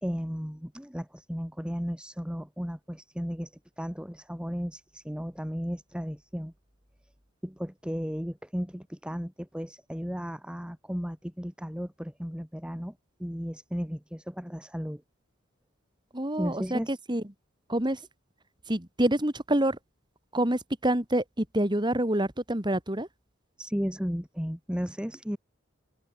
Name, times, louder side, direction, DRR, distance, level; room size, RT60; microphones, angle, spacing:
voice 1, 0.0-6.5 7.4-15.0 16.4-17.0 23.6-25.4, equal, 5° right, 2.0 m, -35 dB
voice 2, 16.1-17.2 17.7-18.0 18.7-19.8 20.3-23.1, right 1 dB, 20° right, 2.3 m, -27 dB
head